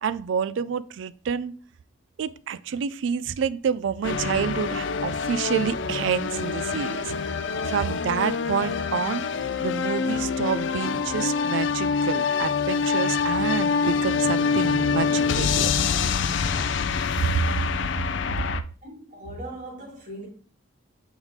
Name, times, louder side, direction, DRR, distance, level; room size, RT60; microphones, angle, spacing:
voice 1, 0.0-1.5 2.2-7.1 7.7-9.2 9.6-15.7, right 7 dB, 65° right, 0.3 m, -28 dB
sound 1, 4.0-18.6, left 5 dB, 65° left, 0.4 m, -25 dB
voice 2, 18.8-20.3, right 1 dB, 40° right, 2.0 m, -39 dB
8.0 x 3.5 x 3.5 m
head